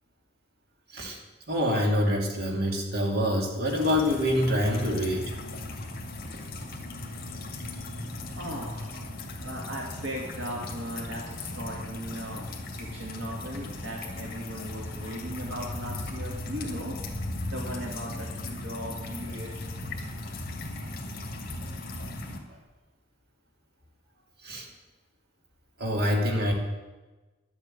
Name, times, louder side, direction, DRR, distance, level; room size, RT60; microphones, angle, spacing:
voice 1, 1.5-5.3 24.4-24.7 25.8-26.5, left 1 dB, 55° right, 0 dB, 2.9 m, -26 dB
sound 1, 3.7-22.4, left 2 dB, 50° left, 2.3 m, -37 dB
voice 2, 8.3-9.0 9.4-17.0 17.4-19.5, equal, 75° right, -1 dB, 2.4 m, -38 dB
11.5 x 8.4 x 8.9 m, 1.2 s
head